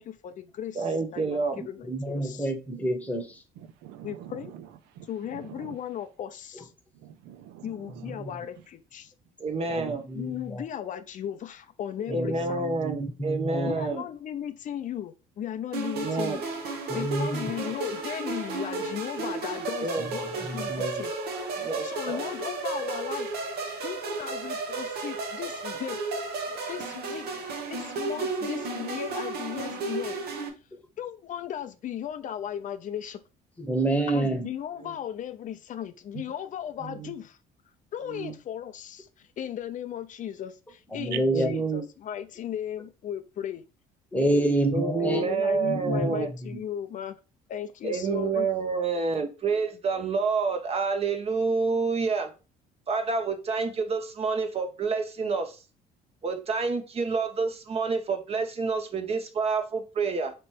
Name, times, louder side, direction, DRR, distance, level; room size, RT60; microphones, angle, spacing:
voice 1, 0.0-2.5 4.0-4.5 5.1-6.7 7.6-9.1 10.1-12.7 13.6-16.4 16.9-21.1 21.8-23.3 23.8-26.0 26.7-27.3 27.7-30.2 31.0-33.2 34.1-37.4 37.9-39.1 39.4-43.6 44.2-44.5 45.0-47.2 47.5-48.5, left 10 dB, 50° left, 0.5 m, -36 dB
voice 2, 0.7-1.7 9.4-10.1 12.1-14.0 16.0-16.4 19.8-20.1 20.3-20.5 21.6-22.2 36.8-37.1 38.1-38.4 41.3-41.8 44.7-46.3 47.8-52.3 52.9-55.6 56.2-60.3, right 4 dB, 35° right, 0.7 m, -28 dB
voice 3, 1.9-3.4 6.5-6.6 8.0-8.4 9.7-10.6 12.0-13.9 16.9-17.5 20.0-20.1 20.4-21.0 33.6-34.5 40.9-41.5 44.1-45.2 45.6-46.6, right 1 dB, 10° left, 1.0 m, -29 dB
voice 4, 3.6-4.7 5.0-5.7 6.9-8.2 9.8-10.0 22.1-22.2 41.1-41.4, right 11 dB, 85° right, 0.5 m, -43 dB
sound 1, 15.7-30.5, right 3 dB, 70° right, 1.0 m, -33 dB
3.1 x 3.0 x 4.6 m
cardioid pair, 110°, 17 cm